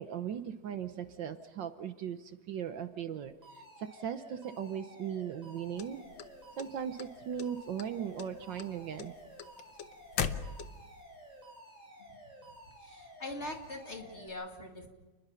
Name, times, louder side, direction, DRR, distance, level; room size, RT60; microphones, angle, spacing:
voice 1, 0.0-6.0 6.6-9.1, right 8 dB, 65° right, 10 dB, 1.5 m, -38 dB
Alarm, 3.4-14.3, right 1 dB, 20° right, 6.9 m, -53 dB
sound 1, 5.8-7.0 7.4-7.9 8.2-11.0, left 8 dB, 65° left, 1.6 m, -37 dB
voice 2, 12.8-14.9, left 2 dB, 35° left, 2 dB, 2.7 m, -42 dB
29.5 x 21.0 x 5.7 m, 1.1 s
omnidirectional pair, 2.2 m